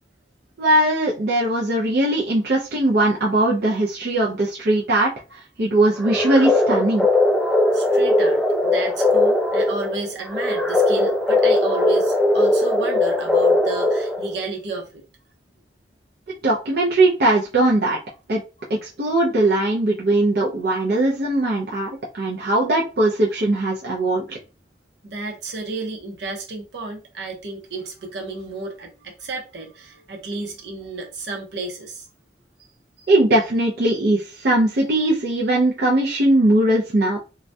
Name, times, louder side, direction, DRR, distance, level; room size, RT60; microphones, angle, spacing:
voice 1, 0.6-7.1 16.4-18.0 18.3-18.4 18.8-24.4 33.1-37.2, right 1 dB, 60° right, -3 dB, 0.5 m, -20 dB
sound 1, 6.0-14.4, left 2 dB, 5° left, 0.4 m, -19 dB
voice 2, 7.7-15.0 22.3-22.4 25.0-32.0, right 3 dB, 80° right, 2 dB, 0.8 m, -32 dB
2.3 x 2.1 x 2.6 m, 0.31 s
head